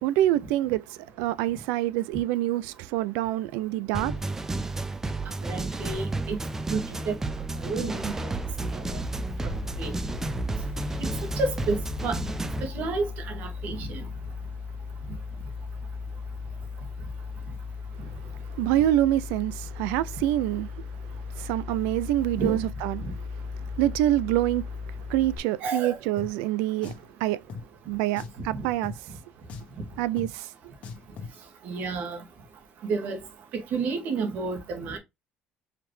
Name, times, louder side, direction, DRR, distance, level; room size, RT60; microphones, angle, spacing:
voice 1, 0.0-0.8 1.2-4.1 18.6-20.7 21.4-23.0 23.8-24.6 25.1-26.9 27.2-27.4 27.9-28.9 30.0-30.5, right 14 dB, 90° right, 0.4 m, -26 dB
sound 1, 3.9-12.7, right 2 dB, 15° right, 0.6 m, -32 dB
voice 2, 5.4-6.4 6.7-6.8 7.1-7.2 7.6-8.3 8.9-9.0 9.4-9.9 11.0-11.1 11.4-11.8 12.0-12.2 12.6-14.0 22.4-22.6 25.6-26.0 31.6-32.2 32.9-33.2 33.7-35.0, right 4 dB, 65° right, 1.8 m, -30 dB
sound 2, 8.5-25.4, left 5 dB, 25° left, 0.5 m, -37 dB
Drum, 26.2-26.3 26.8-27.1 27.5-27.6 28.2-28.4 28.8-29.0 29.5-29.8 30.2-30.3 30.8-31.4, left 5 dB, 50° left, 1.2 m, -39 dB
4.9 x 3.2 x 3.1 m
cardioid pair, 105°, 3 cm